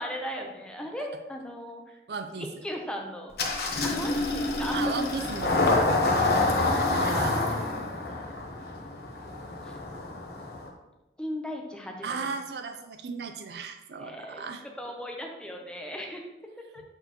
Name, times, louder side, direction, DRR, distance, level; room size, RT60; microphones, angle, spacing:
voice 1, 0.0-2.0 2.4-3.3 3.8-4.9 7.5-7.8 8.5-9.8 10.3-10.6 11.2-12.3 13.9-14.4 14.8-16.2 16.7-16.8, equal, 5° left, 1 dB, 0.7 m, -38 dB
voice 2, 2.1-2.5 4.7-6.3 6.9-7.4 12.0-14.6, right 4 dB, 75° right, 6 dB, 0.4 m, -35 dB
Engine starting, 3.4-10.7, left 2 dB, 65° left, 1.0 m, -27 dB
7.8 x 4.4 x 3.0 m, 1.0 s
head